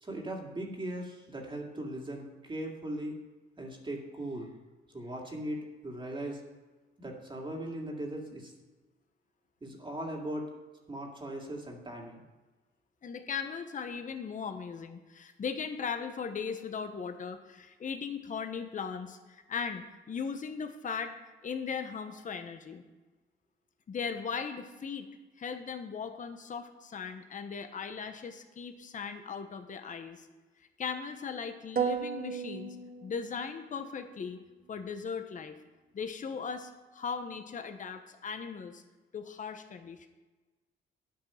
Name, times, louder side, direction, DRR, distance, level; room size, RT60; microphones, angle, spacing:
voice 1, 0.0-3.2 3.6-4.5 4.9-6.4 7.0-8.5 9.6-10.5 10.9-12.2, right 1 dB, 25° right, 0 dB, 2.3 m, -39 dB
voice 2, 13.0-21.1 21.4-22.8 23.9-25.1 25.4-30.3 30.8-32.8 33.0-34.4 34.7-35.6 35.9-38.8 39.1-40.1, left 6 dB, 40° left, 7 dB, 1.0 m, -38 dB
sound 1, 31.8-33.7, right 7 dB, 50° right, 1.6 m, -34 dB
8.8 x 8.7 x 5.7 m, 1.2 s
cardioid pair, 90°, 20 cm